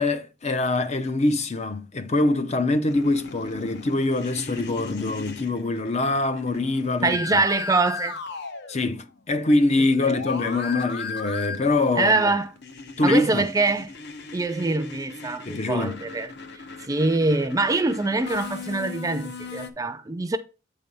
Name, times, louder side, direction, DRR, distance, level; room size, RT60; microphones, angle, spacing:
voice 1, 0.0-7.4 8.7-12.3 13.0-13.5 15.4-16.0, left 2 dB, 35° left, 0.6 m, -24 dB
sound 1, 2.9-9.2 9.5-19.7, left 4 dB, 65° left, 1.0 m, -38 dB
voice 2, 7.0-8.2 12.0-12.5 13.0-13.9 14.3-16.3 16.9-20.4, right 3 dB, 20° right, 0.4 m, -24 dB
8.4 x 3.4 x 5.2 m
head